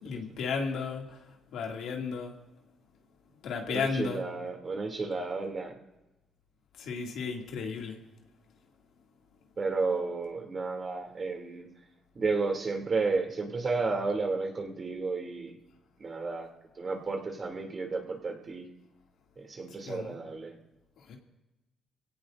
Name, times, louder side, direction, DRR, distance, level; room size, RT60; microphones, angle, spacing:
voice 1, 0.0-1.2 1.5-2.3 3.4-4.2 6.8-8.0 19.9-20.1 21.1-21.2, left 5 dB, 80° left, 1 dB, 2.4 m, -34 dB
voice 2, 3.7-5.7 9.6-11.7 12.1-15.6 16.0-16.5 16.8-18.7 19.4-20.6, right 3 dB, 40° right, 2 dB, 2.7 m, -32 dB
24.0 x 17.5 x 2.6 m, 1.0 s
cardioid pair, 90°, 0 cm